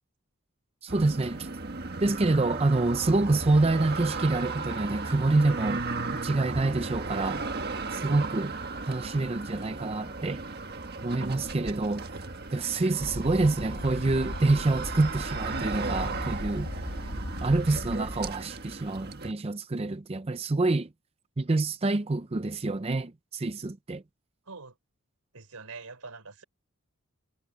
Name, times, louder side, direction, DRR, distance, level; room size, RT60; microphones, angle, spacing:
voice 1, 0.8-1.5 2.0-5.9 6.2-7.4 7.9-8.6 8.9-10.4 11.0-12.1 12.5-16.7 17.4-20.9 21.4-24.0, right 2 dB, 25° right, 0.5 m, -27 dB
sound 1, 0.9-19.3, right 3 dB, 45° right, 1.6 m, -36 dB
sound 2, 13.0-18.3, left 1 dB, 75° left, 2.4 m, -38 dB
voice 2, 24.5-24.8 25.3-26.4, right 4 dB, 90° right, 3.5 m, -44 dB
head